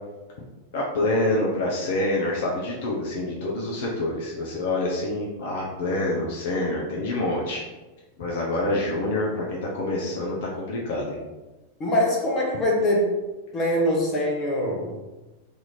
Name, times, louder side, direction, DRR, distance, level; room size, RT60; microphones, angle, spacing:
voice 1, 0.7-7.6 8.2-11.2, left 2 dB, 55° left, -3 dB, 0.7 m, -26 dB
voice 2, 11.8-13.2 13.5-15.0, left 1 dB, 30° left, 0 dB, 0.9 m, -23 dB
2.9 x 2.7 x 4.0 m, 1.1 s
figure-of-eight pair, 90°, 0 cm